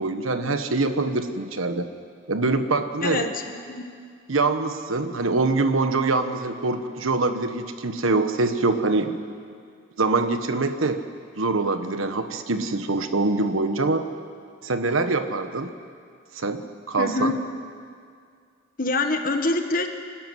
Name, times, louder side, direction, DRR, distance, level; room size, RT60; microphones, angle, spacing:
voice 1, 0.0-1.9 2.3-3.3 4.3-9.2 10.0-11.0 11.4-14.1 14.6-15.7 16.3-17.3, right 3 dB, 85° right, 8 dB, 1.3 m, -24 dB
voice 2, 3.0-3.9 17.0-17.4 18.8-19.9, left 2 dB, 45° left, 6 dB, 1.4 m, -25 dB
24.5 x 13.0 x 9.4 m, 2.2 s
head